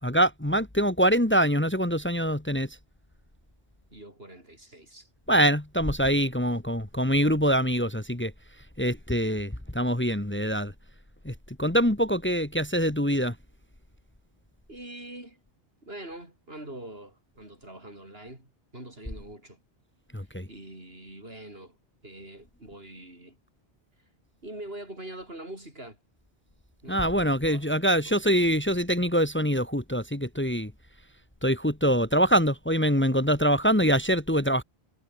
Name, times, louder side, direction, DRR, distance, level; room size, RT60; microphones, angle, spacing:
voice 1, 0.0-2.8 5.3-10.7 11.2-13.4 20.1-20.5 26.9-30.7 31.4-34.6, equal, 10° left, 1.9 m, -24 dB
voice 2, 3.9-5.1 14.7-15.4 15.8-19.6 20.5-21.8 22.0-23.4 24.4-26.0 26.8-27.0 27.4-27.7 28.1-28.2, right 1 dB, 65° right, 7.2 m, -43 dB
omnidirectional pair, 1.1 m